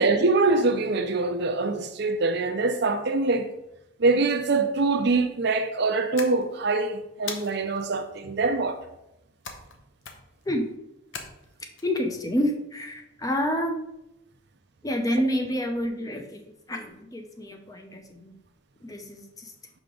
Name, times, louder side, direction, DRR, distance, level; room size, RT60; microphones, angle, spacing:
voice 1, 0.0-3.5 4.0-8.8, right 3 dB, 55° right, 0.5 m, -24 dB
sound 1, 6.2-6.8 7.3-7.9 9.4-9.8 10.0-10.4 11.1-11.8, left 5 dB, 70° left, 0.8 m, -39 dB
voice 2, 11.8-13.9 14.8-16.4 16.7-18.4 18.8-19.5, equal, 15° left, 0.6 m, -28 dB
5.7 x 5.0 x 3.8 m
head